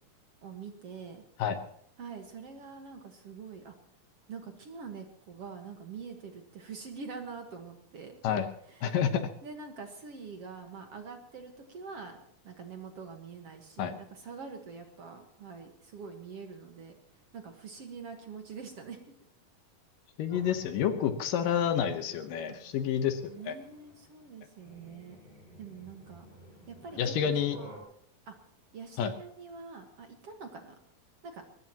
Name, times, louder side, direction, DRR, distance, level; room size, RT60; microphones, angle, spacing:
voice 1, 0.4-1.2 2.0-3.7 4.3-8.4 8.7-9.0 9.4-12.2 12.4-17.0 17.3-19.0 22.5-22.6 23.3-25.2 25.6-26.2 26.7-27.4 28.3-28.4 28.7-30.8 31.2-31.4, right 5 dB, 50° right, 4 dB, 2.1 m, -45 dB
voice 2, 8.8-9.3 13.8-13.9 20.2-23.6 27.0-27.6 29.0-29.1, left 8 dB, 70° left, 8 dB, 2.7 m, -29 dB
sound 1, 20.3-27.8, equal, 40° left, 7.7 m, -52 dB
22.5 x 20.5 x 3.0 m, 0.68 s
omnidirectional pair, 4.1 m